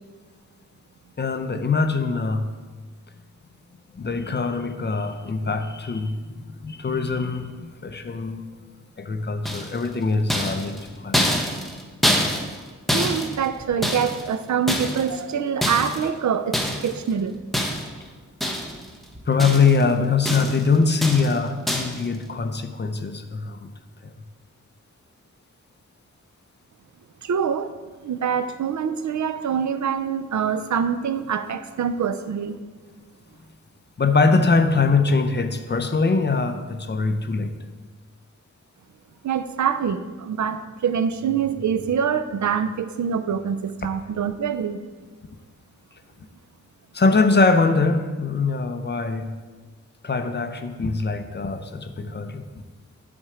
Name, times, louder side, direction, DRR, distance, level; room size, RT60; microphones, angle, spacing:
voice 1, 1.2-2.5 3.9-6.2 6.6-8.5 9.0-10.8 11.0-11.2 19.3-23.7 24.0-24.1 34.0-37.6 46.9-49.3 50.0-52.5, left 4 dB, 35° left, 8 dB, 0.6 m, -22 dB
sound 1, 9.4-9.9 10.3-14.3 14.7-15.2 15.6-16.1 16.5-17.0 17.5-18.0 18.4-18.9 19.1-19.8 20.2-20.7 21.0-21.4 21.7-22.0, equal, ahead, 0.9 m, -25 dB
voice 2, 12.9-17.3 27.2-27.7 28.0-32.6 39.2-44.8, right 7 dB, 70° right, 11 dB, 0.5 m, -25 dB
10.5 x 4.4 x 4.9 m, 1.4 s
wide cardioid pair, 120°, 30 cm